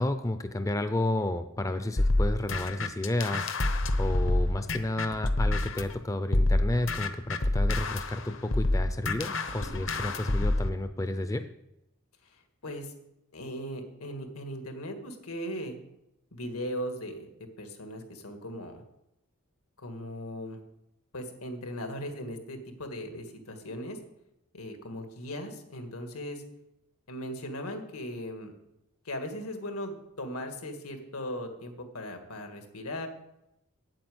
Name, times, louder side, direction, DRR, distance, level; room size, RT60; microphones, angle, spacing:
voice 1, 0.0-3.5 4.0-11.4, left 1 dB, 15° left, 9 dB, 0.4 m, -31 dB
sound 1, 2.0-5.9 6.3-10.7, left 2 dB, 60° left, 0.9 m, -27 dB
voice 2, 12.2-12.9 13.3-15.8 16.3-17.3 17.6-18.8 19.8-20.6 21.1-24.0 24.5-26.4 27.1-28.5 29.0-33.1, equal, 90° left, 5 dB, 1.9 m, -38 dB
8.8 x 8.5 x 7.9 m, 0.88 s
head